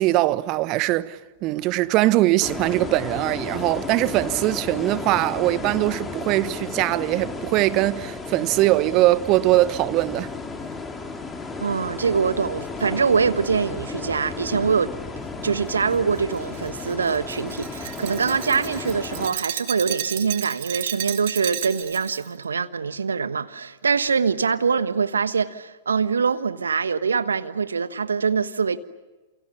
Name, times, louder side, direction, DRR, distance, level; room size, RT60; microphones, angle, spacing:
voice 1, 0.0-10.3, right 17 dB, 40° right, 1.2 m, -21 dB
sound 1, 2.4-19.3, left 3 dB, 10° left, 3.5 m, -34 dB
voice 2, 11.6-14.9 15.4-28.8, right 5 dB, 75° right, 1.3 m, -24 dB
Glass, 15.9-22.3, right 14 dB, 55° right, 2.5 m, -33 dB
29.5 x 28.5 x 6.9 m
figure-of-eight pair, 105°, 0 cm